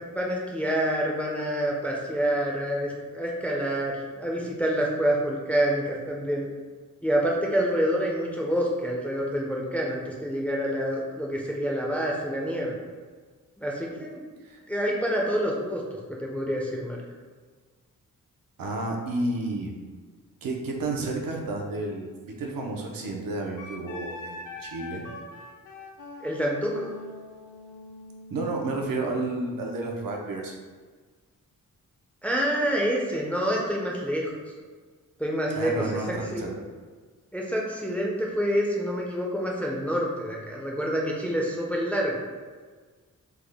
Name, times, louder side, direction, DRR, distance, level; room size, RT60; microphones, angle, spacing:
voice 1, 0.1-6.5 7.0-12.8 13.6-14.2 14.7-17.0 26.2-26.9 32.2-34.3 35.2-35.7 36.3-36.4 37.3-42.1, equal, 5° left, -2 dB, 0.3 m, -27 dB
voice 2, 18.6-19.7 20.4-25.1 28.3-30.6 35.5-36.6, right 2 dB, 85° right, 0 dB, 0.6 m, -31 dB
Wind instrument woodwind instrument, 23.6-28.9, left 2 dB, 65° left, 0.5 m, -43 dB
3.5 x 2.1 x 3.4 m, 1.5 s
wide cardioid pair, 155°, 33 cm